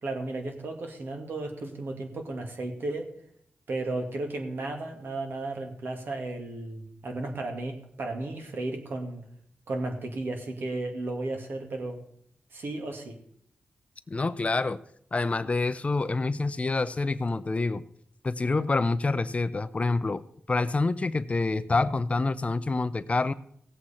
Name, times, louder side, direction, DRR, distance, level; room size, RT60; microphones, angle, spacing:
voice 1, 0.0-3.1 3.7-9.2 9.7-12.0 12.5-13.2, right 2 dB, 70° right, 3 dB, 2.3 m, -34 dB
voice 2, 14.1-14.8 15.1-17.8 18.2-20.2 20.5-23.3, left 3 dB, 35° left, 15 dB, 0.6 m, -27 dB
17.0 x 7.9 x 4.4 m, 0.67 s
cardioid pair, 65°, 4 cm